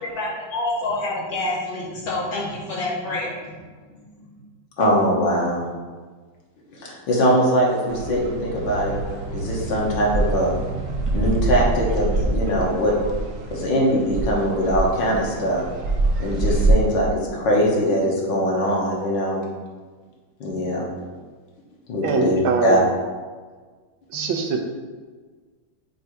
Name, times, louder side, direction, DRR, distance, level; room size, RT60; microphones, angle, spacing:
voice 1, 0.0-3.6, left 2 dB, 50° left, -4 dB, 1.6 m, -27 dB
voice 2, 4.8-5.7 6.7-8.9 9.3-10.5 11.1-12.9 13.5-15.6 16.2-19.4 20.4-20.9 21.9-22.8 24.1-24.3, equal, 70° left, -3 dB, 1.8 m, -21 dB
sound 1, 7.9-16.7, right 2 dB, 65° right, 0.8 m, -25 dB
voice 3, 22.0-22.8 24.1-24.6, right 5 dB, 85° right, 4 dB, 1.5 m, -22 dB
7.6 x 2.7 x 4.6 m, 1.5 s
omnidirectional pair, 2.1 m